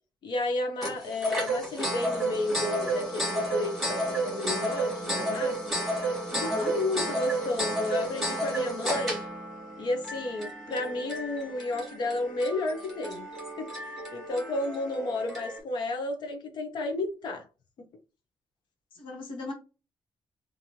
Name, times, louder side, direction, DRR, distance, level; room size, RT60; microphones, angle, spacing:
voice 1, 0.2-5.6 6.4-9.2 9.8-13.3 13.6-13.7 14.1-17.4, left 2 dB, 60° left, 0.6 m, -32 dB
sound 1, 0.8-15.6, right 1 dB, ahead, 1.5 m, -32 dB
voice 2, 6.3-6.8 18.9-19.5, left 2 dB, 75° left, 1.1 m, -38 dB
2.9 x 2.6 x 2.6 m
cardioid pair, 160°, 9 cm